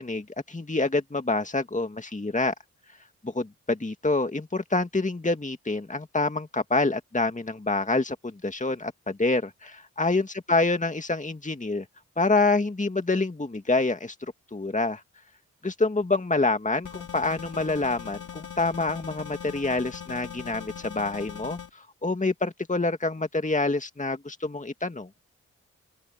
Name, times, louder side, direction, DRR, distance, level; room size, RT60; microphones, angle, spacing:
voice 1, 0.0-2.5 3.2-11.8 12.2-14.1 14.5-15.0 15.6-21.6 22.0-25.1, left 3 dB, 25° left, 2.2 m, -27 dB
sound 1, 16.8-21.7, left 8 dB, 65° left, 3.9 m, -40 dB
supercardioid pair, 40°, 32 cm